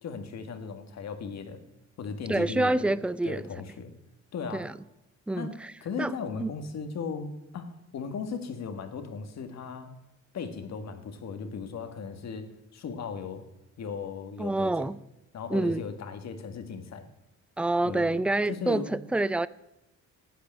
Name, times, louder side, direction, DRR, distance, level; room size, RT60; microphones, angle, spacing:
voice 1, 0.0-1.6 2.0-3.9 4.3-4.7 5.3-5.5 5.8-9.9 10.3-13.4 13.8-14.9 15.3-17.0 17.8-19.0, left 5 dB, 60° left, 1.8 m, -37 dB
voice 2, 2.3-3.4 4.5-4.7 5.3-5.7 6.0-6.1 6.4-6.5 14.4-15.0 15.5-15.8 17.6-19.5, right 2 dB, 5° right, 0.4 m, -27 dB
12.0 x 8.4 x 8.7 m
cardioid pair, 90°, 30 cm